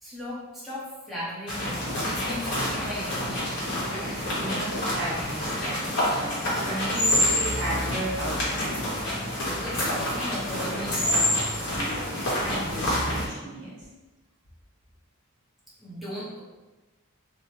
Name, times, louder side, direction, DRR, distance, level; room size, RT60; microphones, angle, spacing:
voice 1, 0.0-3.6 9.6-11.2 15.8-16.4, left 1 dB, ahead, -9 dB, 0.9 m, -37 dB
sound 1, 1.5-13.3, left 1 dB, 55° left, 1.0 m, -27 dB
voice 2, 3.9-6.3 6.6-8.7 11.6-12.0 12.4-13.7, right 1 dB, 50° right, -7 dB, 1.4 m, -35 dB
3.1 x 2.2 x 2.9 m, 1.2 s
head